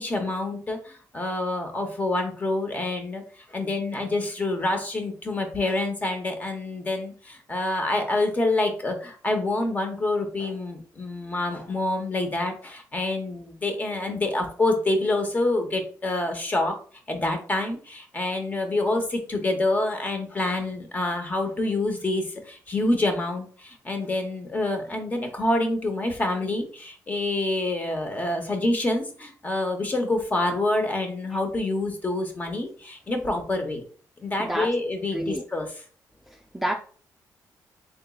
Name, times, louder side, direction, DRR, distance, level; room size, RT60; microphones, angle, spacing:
voice 1, 0.0-16.8 17.1-33.8 34.2-35.8, left 2 dB, 25° left, 0.9 m, -27 dB
voice 2, 35.1-35.4 36.3-36.7, right 1 dB, 5° right, 0.4 m, -29 dB
3.8 x 3.6 x 2.3 m
cardioid pair, 130°, 7 cm